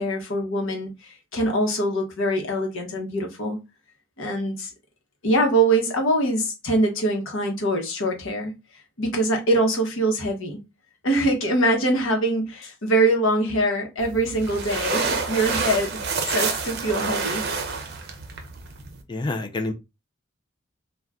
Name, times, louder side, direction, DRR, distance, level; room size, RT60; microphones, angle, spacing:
voice 1, 0.0-3.6 4.2-4.7 5.2-8.5 9.0-10.6 11.0-16.0 16.3-17.4, right 1 dB, 70° left, 1.0 m, -23 dB
sound 1, 14.0-19.0, right 4 dB, 50° right, 0.5 m, -28 dB
voice 2, 19.1-19.7, left 2 dB, 20° left, 0.4 m, -27 dB
2.5 x 2.2 x 3.4 m
head